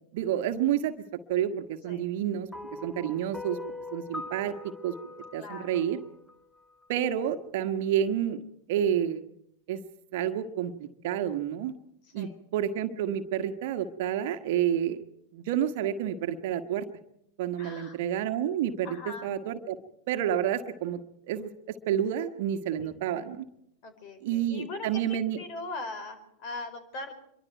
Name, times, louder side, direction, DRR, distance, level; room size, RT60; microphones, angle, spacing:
voice 1, 0.1-0.9 1.3-2.5 2.8-3.6 3.9-4.6 4.8-4.9 5.3-6.0 6.9-8.4 8.7-9.2 9.7-9.8 10.1-11.7 12.1-15.0 15.3-16.9 17.4-18.9 19.2-19.8 20.1-21.0 21.3-23.4 24.2-25.4, right 10 dB, 50° right, 9 dB, 1.6 m, -29 dB
sound 1, 2.5-6.9, left 3 dB, 5° left, 0.8 m, -42 dB
voice 2, 5.4-6.0 12.0-12.4 17.6-18.0 18.8-19.3 22.8-22.9 23.8-27.1, left 3 dB, 45° left, 10 dB, 4.7 m, -41 dB
25.5 x 23.0 x 4.6 m, 0.77 s
figure-of-eight pair, 90°, 0 cm